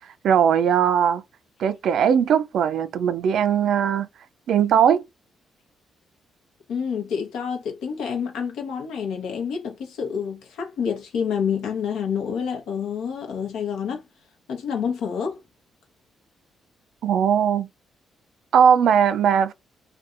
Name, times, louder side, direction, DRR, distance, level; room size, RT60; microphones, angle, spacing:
voice 1, 0.2-1.2 1.6-4.1 4.5-5.0 17.0-17.7 18.5-19.5, right 8 dB, 70° right, 0.3 m, -19 dB
voice 2, 6.7-14.0 14.5-15.4, left 7 dB, 80° left, 0.9 m, -28 dB
2.6 x 2.3 x 2.4 m
supercardioid pair, 50°, 0 cm